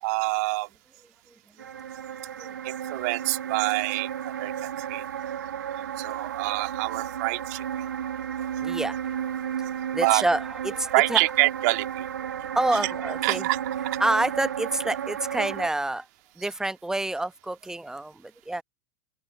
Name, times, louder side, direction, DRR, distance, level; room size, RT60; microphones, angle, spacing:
voice 1, 0.0-0.7 2.6-5.0 6.0-7.8 10.0-10.2 10.9-12.0 12.8-12.9 13.2-13.6, right 27 dB, 50° right, 1.9 m, -26 dB
sound 1, 1.6-15.7, right 9 dB, 70° right, 2.2 m, -33 dB
voice 2, 8.6-9.0 9.9-11.2 12.5-13.4 14.0-16.1 16.4-18.6, right 2 dB, 5° right, 1.0 m, -27 dB
open air
figure-of-eight pair, 90°, 11 cm